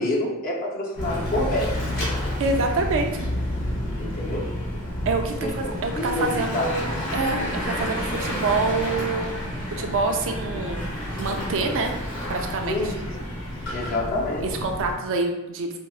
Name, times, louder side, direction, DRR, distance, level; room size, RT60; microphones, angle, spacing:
voice 1, 0.0-1.9 4.0-4.5 5.4-5.5 6.0-6.6 12.6-13.2 13.7-14.5, left 2 dB, 40° left, -1 dB, 0.6 m, -27 dB
Bicycle / Mechanisms, 1.0-14.9, left 1 dB, 65° left, 1.5 m, -30 dB
voice 2, 2.4-3.1 5.1-9.4 9.7-10.9 11.2-11.9 12.3-12.9 14.6-15.7, right 3 dB, 60° right, 3 dB, 0.4 m, -26 dB
4.5 x 2.0 x 2.3 m, 0.96 s
head